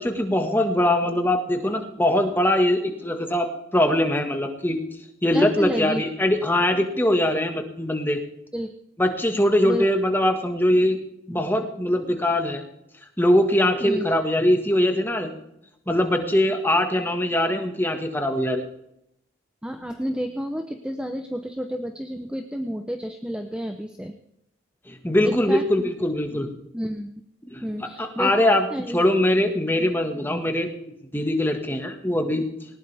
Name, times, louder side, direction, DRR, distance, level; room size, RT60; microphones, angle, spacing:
voice 1, 0.0-3.5 3.7-4.8 5.2-8.2 9.0-11.0 11.3-12.6 13.2-15.3 15.9-18.6 24.9-26.5 27.5-27.7 28.0-28.7 28.9-30.7 31.1-32.4, left 1 dB, 10° left, 4 dB, 1.7 m, -22 dB
voice 2, 5.3-6.0 6.3-6.4 8.5-8.7 9.6-9.9 13.8-14.1 19.6-24.1 25.2-25.9 26.7-27.1 27.6-28.3 28.7-29.0, equal, 5° right, 5 dB, 0.7 m, -30 dB
19.0 x 19.0 x 3.5 m, 0.80 s
head